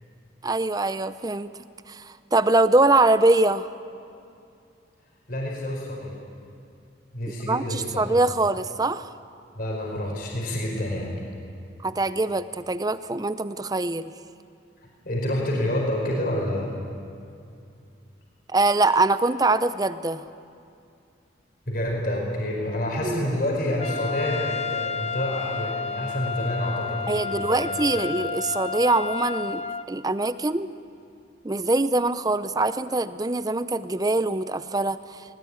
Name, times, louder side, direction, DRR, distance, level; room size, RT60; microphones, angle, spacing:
voice 1, 0.4-1.5 1.9-2.0 2.3-3.7 7.4-9.1 11.8-14.1 18.5-20.2 23.0-23.3 27.1-29.6 29.9-30.7 31.4-35.0, right 2 dB, 20° right, 13 dB, 0.6 m, -23 dB
voice 2, 5.3-6.1 7.1-8.0 9.6-11.1 14.8-16.7 21.7-27.7 27.9-28.0, left 1 dB, 50° left, -1 dB, 4.8 m, -28 dB
Trumpet, 23.8-29.8, left 6 dB, 35° left, 0.6 m, -31 dB
20.0 x 19.5 x 9.5 m, 2.5 s
head